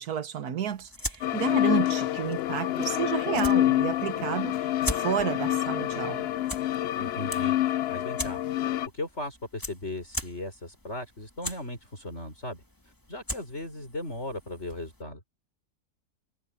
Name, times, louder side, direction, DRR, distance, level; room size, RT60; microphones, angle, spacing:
voice 1, 0.0-6.3, right 8 dB, 75° right, 1.7 m, -31 dB
sound 1, 0.7-15.0, left 1 dB, 15° left, 2.2 m, -41 dB
sound 2, 1.2-8.9, left 13 dB, 80° left, 0.5 m, -27 dB
voice 2, 7.0-8.4 8.9-15.2, left 1 dB, 45° left, 6.8 m, -37 dB
omnidirectional pair, 1.6 m